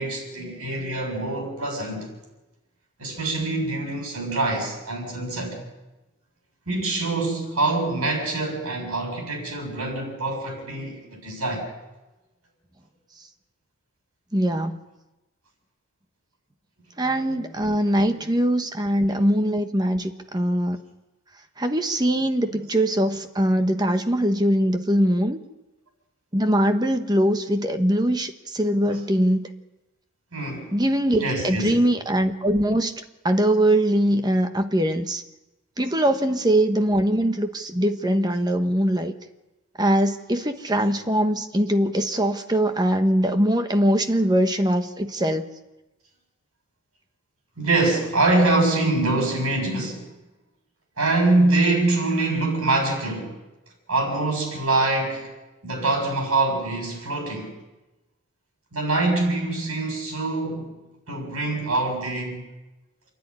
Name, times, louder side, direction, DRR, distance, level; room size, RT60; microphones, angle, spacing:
voice 1, 0.0-2.1 3.0-5.6 6.7-11.7 17.0-17.4 17.9-18.2 20.3-20.4 28.9-29.0 30.3-30.7 31.2-31.8 47.6-50.1 51.0-53.4 53.9-55.3 55.6-57.6 58.7-60.7 61.1-62.5, right 2 dB, 85° right, 7.0 m, -24 dB
voice 2, 14.3-14.8 17.0-20.8 21.6-25.4 26.3-29.5 30.7-32.9 33.2-35.2 35.8-39.1 39.8-45.5, right 1 dB, 20° right, 1.1 m, -22 dB
28.5 x 10.5 x 9.9 m
head